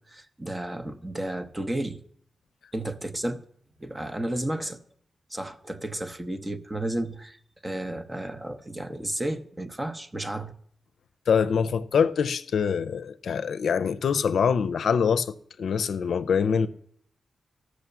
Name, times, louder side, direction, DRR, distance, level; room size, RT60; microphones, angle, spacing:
voice 1, 0.1-2.0 2.7-3.4 3.8-4.8 5.3-10.5, right 1 dB, 20° right, 1.0 m, -32 dB
voice 2, 11.3-15.3 15.6-16.7, left 6 dB, 80° left, 0.5 m, -24 dB
14.0 x 6.4 x 6.9 m
cardioid pair, 80°, 0 cm